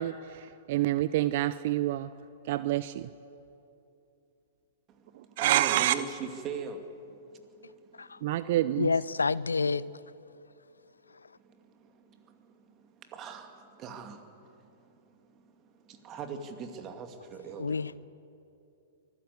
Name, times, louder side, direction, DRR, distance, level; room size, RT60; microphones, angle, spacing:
voice 1, 0.0-2.1 2.5-3.1 5.4-6.0 8.2-8.9, right 14 dB, 50° right, 0.6 m, -27 dB
voice 2, 4.9-8.3 11.4-17.9, right 6 dB, 30° right, 2.4 m, -43 dB
voice 3, 8.8-9.8 17.6-18.1, left 4 dB, 85° left, 0.5 m, -28 dB
24.5 x 15.0 x 8.1 m
figure-of-eight pair, 110°, 0 cm